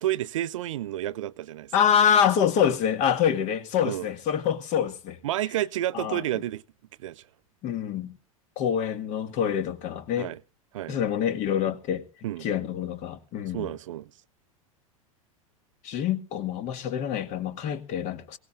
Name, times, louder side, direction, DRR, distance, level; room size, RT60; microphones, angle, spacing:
voice 1, 0.0-1.7 3.8-4.1 5.2-6.6 7.0-7.3 10.2-10.4 10.7-11.0 12.2-12.5 13.5-14.1, right 13 dB, 60° right, 0.6 m, -30 dB
voice 2, 1.7-5.2 5.9-6.2 7.6-8.2 8.6-10.3 10.9-12.0 12.4-13.7 15.8-18.4, left 8 dB, 40° left, 1.9 m, -26 dB
23.0 x 18.0 x 2.5 m
figure-of-eight pair, 85°, 19 cm